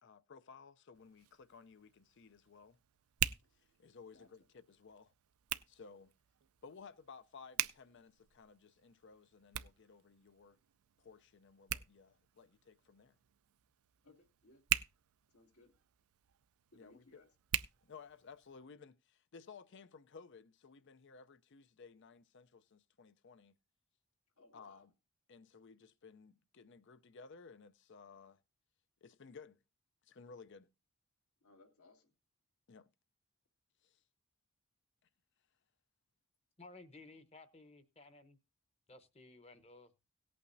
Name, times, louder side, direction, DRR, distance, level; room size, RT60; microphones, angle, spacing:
voice 1, 0.0-2.8 3.6-5.1 5.7-6.1 6.6-10.6 11.0-13.2 16.7-17.2 17.8-23.6 24.5-24.9 25.3-28.4 29.0-29.6 30.0-30.7 32.7-32.9 33.8-34.0, left 5 dB, 55° left, 0.5 m, -57 dB
Hands, 0.9-18.6, right 12 dB, 75° right, 0.5 m, -44 dB
voice 2, 4.1-4.5 14.0-14.6 15.3-15.7 16.7-17.3 24.4-24.9 31.4-32.1, left 2 dB, 80° left, 2.1 m, -64 dB
voice 3, 36.6-38.4 38.9-39.9, left 3 dB, 25° left, 0.9 m, -57 dB
18.0 x 8.5 x 2.6 m
head